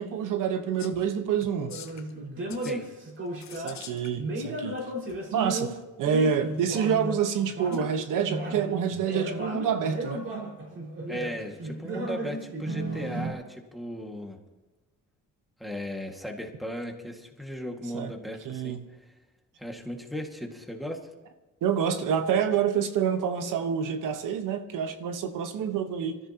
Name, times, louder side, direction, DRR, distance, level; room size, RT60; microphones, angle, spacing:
voice 1, 0.0-1.7 3.5-4.8 5.3-10.2 17.9-18.1 18.4-18.8 21.6-26.2, right 7 dB, 85° right, 1.3 m, -27 dB
sound 1, 0.8-1.1 1.4-2.1 2.5-2.8 3.4-4.1 5.1-5.2 7.7-7.8, left 9 dB, 60° left, 1.2 m, -45 dB
sound 2, 1.6-3.8 4.2-7.2 7.5-13.3, right 1 dB, 40° right, 5.2 m, -34 dB
voice 2, 11.1-14.4 15.6-18.8 19.6-21.1, equal, ahead, 1.9 m, -37 dB
25.5 x 14.5 x 2.9 m
cardioid pair, 135°, 31 cm